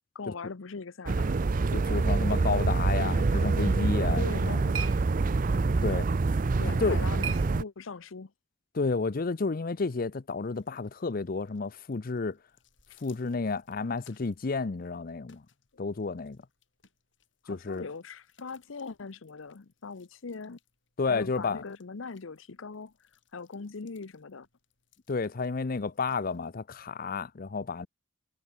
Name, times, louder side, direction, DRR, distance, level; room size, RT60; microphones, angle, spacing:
voice 1, 0.1-1.4 4.2-4.9 6.6-8.3 15.7-15.8 17.4-20.6 21.1-22.9 23.3-24.5, left 4 dB, 85° left, 0.8 m, -41 dB
sound 1, 1.1-7.6, right 3 dB, 45° right, 0.5 m, -26 dB
voice 2, 1.7-4.6 5.8-6.1 6.7-7.0 8.7-12.4 13.0-15.4 15.8-16.4 17.5-17.9 21.0-21.6 25.1-27.9, left 4 dB, 45° left, 0.6 m, -31 dB
sound 2, 4.0-8.2, right 9 dB, 85° right, 3.9 m, -43 dB
sound 3, 10.4-26.5, left 7 dB, 70° left, 8.0 m, -67 dB
head